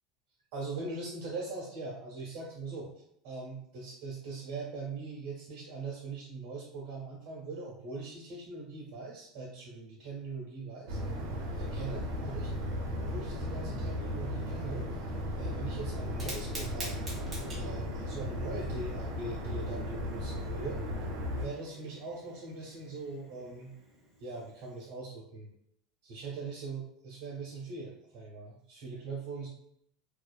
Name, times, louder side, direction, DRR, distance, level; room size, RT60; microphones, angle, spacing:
voice 1, 0.5-2.9 3.2-11.0 11.6-12.5 13.0-14.8 15.4-17.1 17.5-20.8 21.3-23.7 24.2-25.5 26.0-29.5, right 3 dB, 60° right, -5 dB, 0.9 m, -41 dB
sound 1, 10.9-21.5, left 1 dB, 90° right, 0.6 m, -36 dB
Fire, 16.0-24.9, right 1 dB, 10° right, 0.7 m, -48 dB
2.6 x 2.5 x 2.3 m, 0.72 s
supercardioid pair, 180°, 0 cm